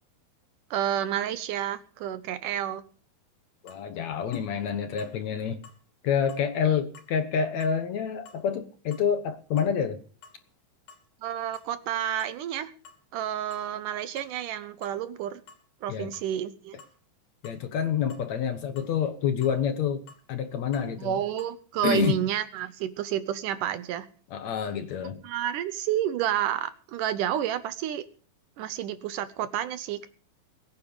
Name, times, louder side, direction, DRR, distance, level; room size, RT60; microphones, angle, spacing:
voice 1, 0.7-2.8 11.2-12.7 13.1-15.4 15.8-16.8 21.0-24.1 25.2-28.0 28.6-30.1, right 11 dB, 75° right, 13 dB, 2.2 m, -30 dB
voice 2, 3.6-5.6 6.0-10.0 15.9-16.1 17.4-21.2 21.8-22.2 24.3-25.2, left 7 dB, 65° left, 9 dB, 2.1 m, -28 dB
sound 1, 3.7-3.8 4.3-4.5 5.0-5.2 5.6-5.8 6.3-6.5 7.0-7.1 7.6-7.8 8.3-8.4 8.9-9.1 9.6-9.8 10.1-10.6 10.9-11.1 11.5-11.7 12.2-12.4 12.9-13.0 13.5-13.7 14.2-14.4 14.8-15.0 15.5-15.6 16.1-16.3 16.8-17.0 17.4-17.6 18.1-18.3 18.8-19.0 19.4-19.6 20.1-20.3 20.7-20.9 21.4-21.6 22.0-22.2, left 4 dB, 85° left, 4.3 m, -52 dB
21.5 x 9.8 x 5.0 m, 0.41 s
omnidirectional pair, 4.0 m